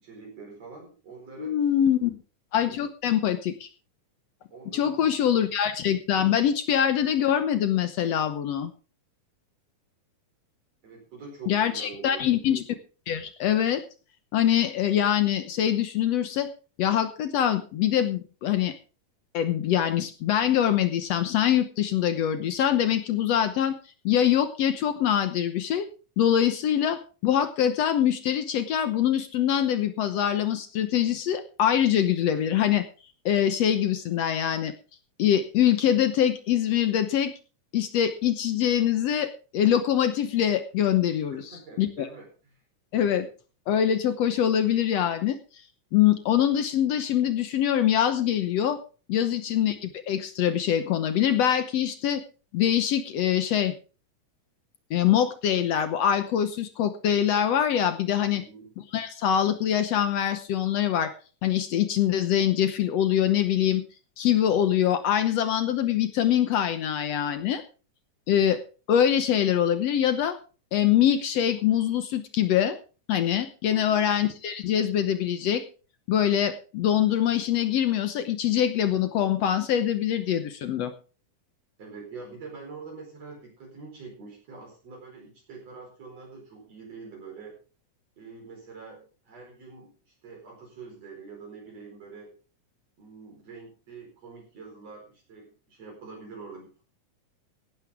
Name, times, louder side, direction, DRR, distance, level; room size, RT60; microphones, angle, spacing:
voice 1, 0.0-1.6 4.5-5.4 10.8-12.2 41.3-42.3 42.5-42.6 49.2-49.6 58.3-58.7 73.7-74.1 81.8-87.6 88.2-92.3 93.0-96.8, right 4 dB, 50° right, 0 dB, 5.7 m, -45 dB
voice 2, 1.4-2.2 2.5-3.7 4.7-8.7 11.5-12.6 13.1-13.8 14.3-16.5 16.8-18.7 19.3-23.8 24.1-25.9 26.2-32.9 33.3-34.7 35.2-37.3 37.7-41.4 41.8-42.1 42.9-43.3 43.7-45.4 45.9-48.8 49.1-52.2 52.5-53.7 54.9-58.4 58.9-61.1 61.4-63.8 64.2-67.6 68.3-68.6 68.9-70.4 70.7-72.8 73.1-75.6 76.1-80.9, left 10 dB, 65° left, 9 dB, 1.8 m, -24 dB
16.5 x 12.0 x 3.6 m, 0.36 s
omnidirectional pair, 3.7 m